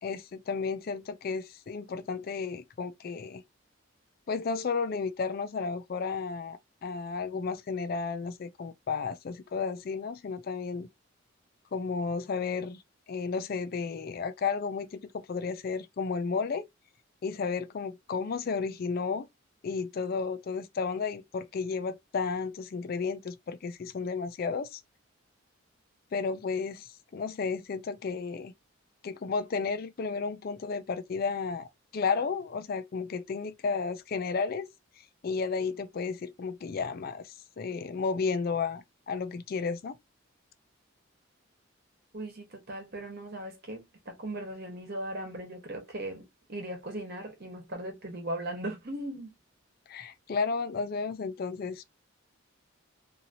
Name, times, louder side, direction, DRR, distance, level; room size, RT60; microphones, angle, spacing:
voice 1, 0.0-3.4 4.3-10.9 11.7-12.8 13.1-16.6 17.2-19.3 19.6-24.8 26.1-28.5 29.0-34.7 35.2-39.9 49.9-51.8, left 5 dB, 45° left, 0.4 m, -33 dB
voice 2, 42.1-46.2 46.5-49.3, right 1 dB, 50° right, 1.2 m, -38 dB
2.8 x 2.7 x 2.7 m
head